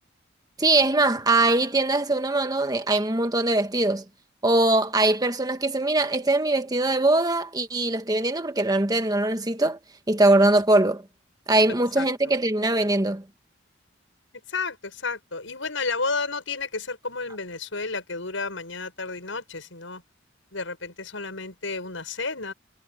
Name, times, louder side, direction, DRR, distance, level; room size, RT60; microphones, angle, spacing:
voice 1, 0.6-4.0 4.4-9.8 10.1-11.0 11.5-13.2, right 2 dB, 20° right, 1.5 m, -22 dB
voice 2, 11.7-12.1 14.5-20.0 20.5-22.5, left 4 dB, 80° left, 6.8 m, -32 dB
head